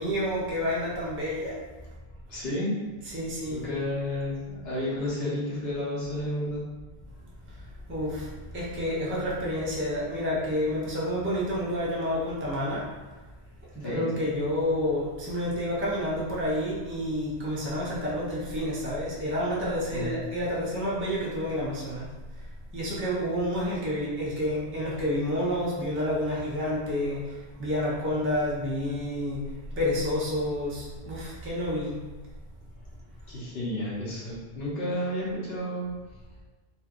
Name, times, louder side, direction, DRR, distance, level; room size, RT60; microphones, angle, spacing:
voice 1, 0.0-1.6 3.1-3.7 7.9-12.9 13.7-22.1 22.7-29.4 29.8-32.0, left 1 dB, 15° right, -6 dB, 0.5 m, -29 dB
voice 2, 2.3-2.8 3.5-6.6 13.8-14.1 19.9-20.1 33.3-35.9, left 1 dB, 70° left, -7 dB, 1.2 m, -31 dB
3.1 x 2.9 x 2.4 m, 1.2 s
omnidirectional pair, 1.1 m